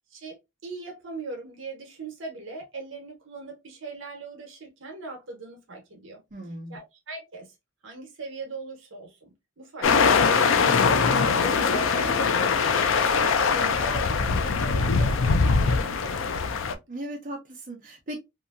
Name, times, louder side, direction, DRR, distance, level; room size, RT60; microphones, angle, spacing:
voice 1, 0.1-6.2 6.7-7.5 7.8-10.9 11.4-16.7, right 3 dB, 65° right, 1.0 m, -40 dB
voice 2, 6.3-6.8 11.1-11.4 16.9-18.2, right 1 dB, 40° right, 0.8 m, -37 dB
sound 1, 9.8-16.7, left 5 dB, 65° left, 0.4 m, -22 dB
2.8 x 2.6 x 2.4 m
head